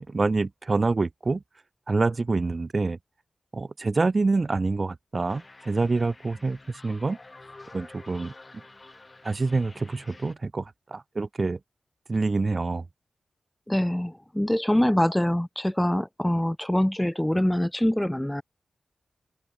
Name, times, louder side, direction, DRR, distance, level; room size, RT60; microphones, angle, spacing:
voice 1, 0.0-1.4 1.9-3.0 3.5-7.2 7.7-8.3 9.2-11.6 12.1-12.9, right 3 dB, 40° right, 0.6 m, -26 dB
sound 1, 5.3-10.3, left 2 dB, 30° left, 6.7 m, -49 dB
voice 2, 13.7-18.4, left 1 dB, 10° left, 1.0 m, -24 dB
wide cardioid pair, 80°, 0 cm